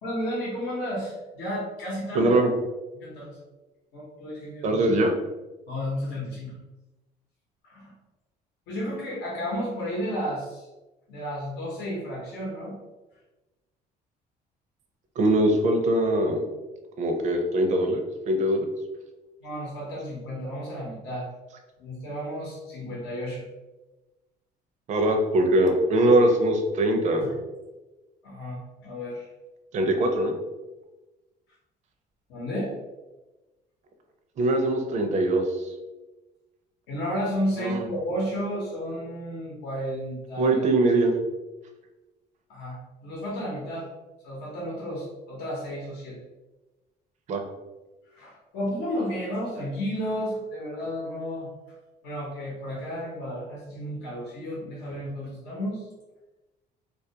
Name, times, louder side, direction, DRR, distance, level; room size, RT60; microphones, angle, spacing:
voice 1, 0.0-2.4 3.0-3.4 3.9-4.9 5.7-6.6 7.6-7.9 8.7-10.7 11.1-12.8 19.4-21.3 21.8-23.5 27.2-27.4 28.2-29.3 32.3-32.7 36.9-40.6 42.5-43.9 44.2-46.2 48.1-51.5 52.0-55.9, equal, 85° left, -5 dB, 0.8 m, -32 dB
voice 2, 2.1-2.5 4.6-5.1 15.2-16.4 17.0-18.7 24.9-27.3 29.7-30.3 34.4-35.7 37.6-37.8 40.4-41.2 47.3-47.4, right 1 dB, 45° right, 4 dB, 0.5 m, -22 dB
2.3 x 2.1 x 2.7 m, 1.1 s
cardioid pair, 110°, 17 cm